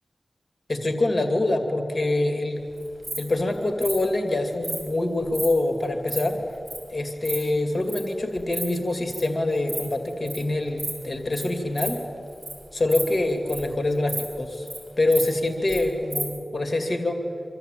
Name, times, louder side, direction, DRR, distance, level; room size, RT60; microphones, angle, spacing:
voice 1, 0.7-2.6 3.2-6.4 6.9-12.0 12.7-14.7 15.0-17.2, left 2 dB, 50° left, 5 dB, 2.4 m, -25 dB
Insect, 2.8-3.2 3.8-4.0 4.6-4.8 5.3-5.5 5.8-6.2 6.7-6.8 7.0-7.4 7.9-8.0 8.4-8.6 8.9-9.2 9.6-9.8 10.1-10.4 10.8-11.0 11.3-11.4 11.8-11.9 12.3-12.5 12.8-13.7 14.1-14.2 14.5-14.8 15.1-15.8 16.1-16.2, right 2 dB, 30° right, 7.6 m, -32 dB
25.5 x 14.0 x 9.1 m, 2.5 s
cardioid pair, 55°, 0 cm